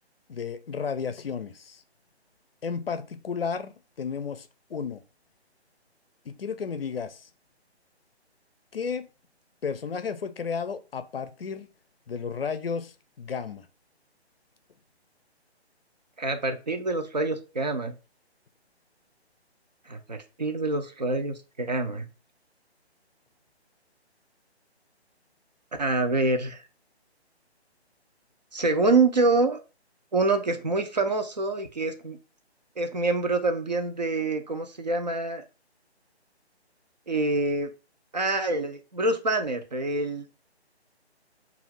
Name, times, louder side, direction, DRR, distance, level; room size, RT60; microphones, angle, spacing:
voice 1, 0.3-1.8 2.6-5.0 6.3-7.3 8.7-9.1 9.6-11.7 12.1-13.7, left 6 dB, 60° left, 0.5 m, -33 dB
voice 2, 16.2-17.9 19.9-22.1 25.8-26.6 28.5-29.6 30.1-32.2 32.8-35.4 37.1-37.7 38.1-40.2, right 3 dB, 40° right, 0.4 m, -26 dB
2.5 x 2.3 x 3.4 m
figure-of-eight pair, 150°, 33 cm